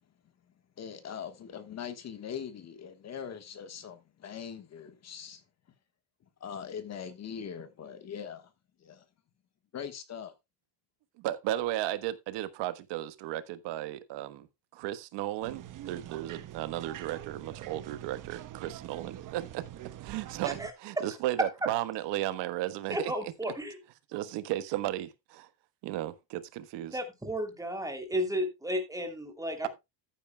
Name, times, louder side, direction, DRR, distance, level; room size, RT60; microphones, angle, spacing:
voice 1, 0.8-5.4 6.4-8.5 8.8-9.0 9.7-10.3, left 7 dB, 35° left, 1.4 m, -41 dB
voice 2, 11.2-14.5 14.7-19.7 20.0-23.1 24.1-25.5 25.8-27.0 29.6-29.7, right 14 dB, 70° right, 1.3 m, -34 dB
sound 1, 15.4-20.7, right 12 dB, 45° right, 1.0 m, -44 dB
voice 3, 22.9-23.8 26.9-29.7, equal, 10° right, 3.0 m, -33 dB
14.0 x 9.1 x 2.3 m
cardioid pair, 140°, 44 cm